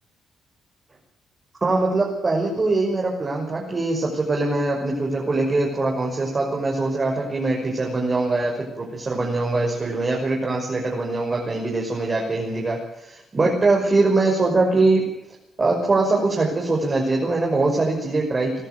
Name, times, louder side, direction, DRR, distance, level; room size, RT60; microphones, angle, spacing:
voice 1, 1.6-15.0 15.6-18.6, right 2 dB, 30° right, -1 dB, 6.0 m, -22 dB
22.5 x 13.0 x 9.4 m, 0.86 s
cardioid pair, 90°, 0 cm